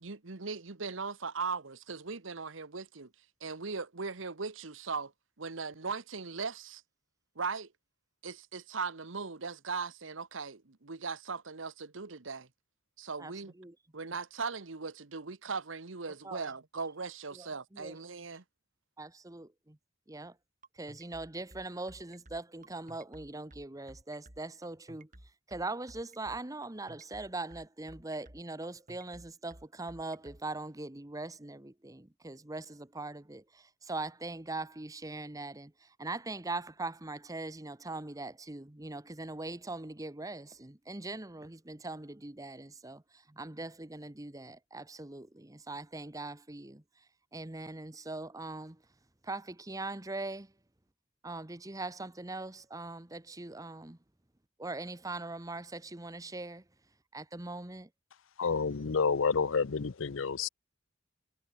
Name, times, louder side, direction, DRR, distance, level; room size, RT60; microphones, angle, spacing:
voice 1, 0.0-3.1 3.4-5.1 5.4-6.8 7.4-7.7 8.2-12.5 13.0-13.5 13.9-18.4, right 4 dB, 75° right, 1.2 m, -39 dB
voice 2, 13.2-13.7 16.2-16.5 17.3-18.0 19.0-19.8 20.1-20.3 20.7-25.1 25.5-46.8 47.3-48.8 49.2-50.5 51.2-54.0 54.6-56.6 57.1-57.9, right 2 dB, 15° right, 1.0 m, -41 dB
sound 1, 20.6-30.4, right 1 dB, 40° right, 3.6 m, -54 dB
voice 3, 58.4-60.5, left 5 dB, 75° left, 0.6 m, -29 dB
head